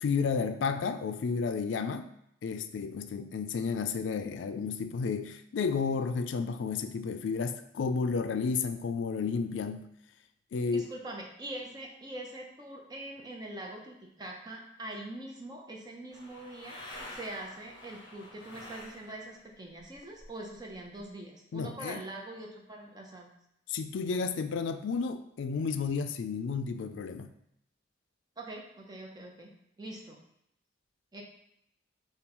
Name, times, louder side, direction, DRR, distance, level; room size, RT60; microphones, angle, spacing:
voice 1, 0.0-2.1 2.4-9.9 10.5-10.9 21.5-22.0 23.7-27.3, left 5 dB, 80° left, 8 dB, 0.4 m, -32 dB
voice 2, 10.7-23.3 28.4-29.5 29.8-30.2 31.1-31.2, right 1 dB, 20° right, 0 dB, 0.7 m, -43 dB
sound 1, 16.1-19.4 19.7-21.0, left 1 dB, 25° left, 1.0 m, -48 dB
6.8 x 2.3 x 3.0 m, 0.76 s
head